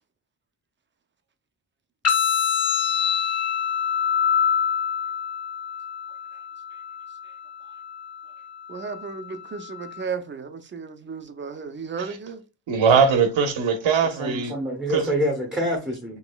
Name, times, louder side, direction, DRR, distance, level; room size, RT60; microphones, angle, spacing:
sound 1, 2.0-10.0, left 8 dB, 35° left, 0.9 m, -26 dB
voice 1, 8.7-12.4, right 5 dB, 25° right, 0.5 m, -34 dB
voice 2, 12.7-14.5 14.9-15.1, right 6 dB, 90° right, 1.1 m, -21 dB
voice 3, 14.2-16.2, equal, ahead, 0.8 m, -26 dB
5.9 x 3.0 x 2.2 m
wide cardioid pair, 160°, 45 cm